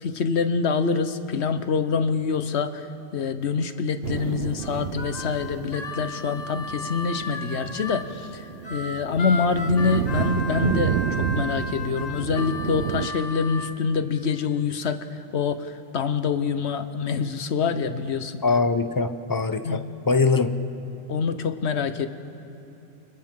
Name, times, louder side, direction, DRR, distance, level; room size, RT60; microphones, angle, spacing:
voice 1, 0.0-2.8 3.1-8.1 8.3-8.4 8.7-15.0 15.3-15.7 15.9-18.4 19.6-19.9 21.1-22.1, left 5 dB, 80° left, 9 dB, 1.2 m, -25 dB
sound 1, 4.0-13.1, right 8 dB, 70° right, 0.8 m, -31 dB
Harmonica, 4.6-8.1 8.6-13.7, left 2 dB, 40° left, 1.4 m, -35 dB
voice 2, 18.4-20.5, left 4 dB, 25° left, 9 dB, 0.7 m, -22 dB
29.5 x 26.0 x 3.8 m, 2.9 s
omnidirectional pair, 1.1 m